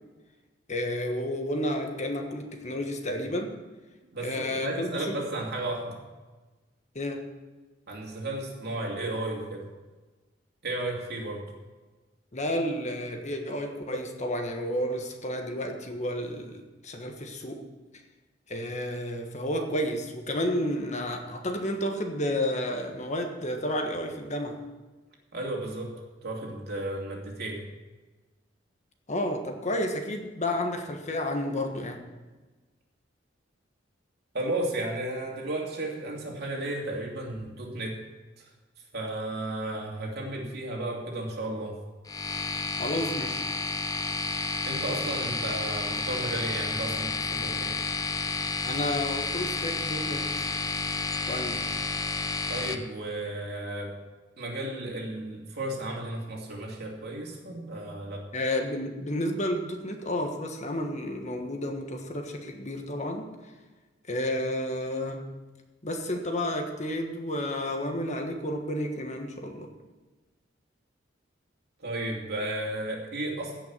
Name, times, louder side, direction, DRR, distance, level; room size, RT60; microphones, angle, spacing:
voice 1, 0.7-3.5 4.2-5.1 6.9-7.2 12.3-17.6 18.5-24.6 29.1-32.0 42.8-43.4 48.6-50.5 51.3-51.7 58.3-63.3 64.1-65.2 65.8-69.7, left 1 dB, 40° left, 4 dB, 1.4 m, -31 dB
voice 2, 4.1-6.0 7.9-9.6 10.6-11.4 25.3-25.9 26.2-27.6 34.3-38.0 38.4-38.5 38.9-41.8 44.2-47.8 52.5-53.9 54.4-58.2 71.8-73.6, right 1 dB, 60° right, -1 dB, 2.8 m, -34 dB
sound 1, 42.1-52.7, left 4 dB, 20° left, 0.7 m, -31 dB
16.5 x 5.8 x 7.4 m, 1.2 s
head